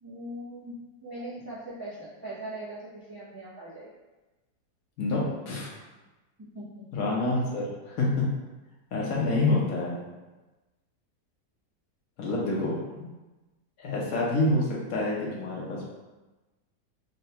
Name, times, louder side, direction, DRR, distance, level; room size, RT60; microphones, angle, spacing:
voice 1, 0.0-0.8 1.0-3.9 6.5-6.8, right 1 dB, 25° right, -10 dB, 0.4 m, -40 dB
voice 2, 5.0-5.7 6.9-8.3 8.9-10.0 12.2-13.1 13.8-15.8, left 2 dB, 70° left, -4 dB, 1.1 m, -27 dB
3.9 x 2.2 x 2.7 m, 1.1 s
omnidirectional pair, 1.7 m